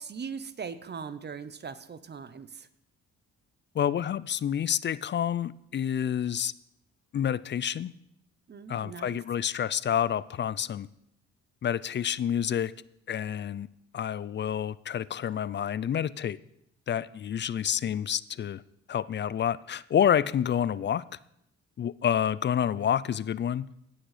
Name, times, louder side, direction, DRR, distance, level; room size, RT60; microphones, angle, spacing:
voice 1, 0.0-2.7 8.5-9.2, right 6 dB, 35° right, 13 dB, 0.8 m, -40 dB
voice 2, 3.7-6.5 7.1-7.9 8.7-10.9 11.6-12.7 13.1-13.7 13.9-16.4 16.9-18.6 18.9-21.0 21.8-23.7, left 9 dB, 40° left, 19 dB, 0.4 m, -28 dB
17.5 x 6.4 x 4.9 m, 0.77 s
cardioid pair, 90°, 30 cm